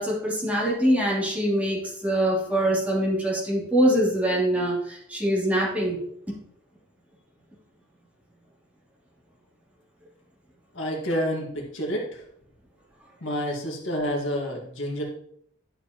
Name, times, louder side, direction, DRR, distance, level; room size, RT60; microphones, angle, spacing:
voice 1, 0.0-6.0, right 1 dB, 10° right, -5 dB, 3.0 m, -24 dB
voice 2, 10.7-12.2 13.2-15.0, equal, 85° left, 0 dB, 1.9 m, -29 dB
11.0 x 6.8 x 3.0 m, 0.69 s
head